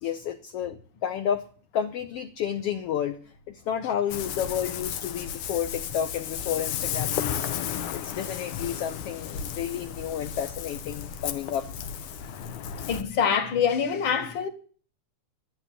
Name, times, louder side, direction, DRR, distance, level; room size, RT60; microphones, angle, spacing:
voice 1, 0.0-1.4 1.7-3.2 3.5-7.5 7.9-11.7, left 9 dB, 65° left, 1.7 m, -31 dB
Ocean, 4.1-13.0, left 9 dB, 90° left, 2.6 m, -34 dB
voice 2, 12.2-14.5, left 7 dB, 45° left, 2.0 m, -26 dB
12.5 x 10.0 x 8.8 m
omnidirectional pair, 3.4 m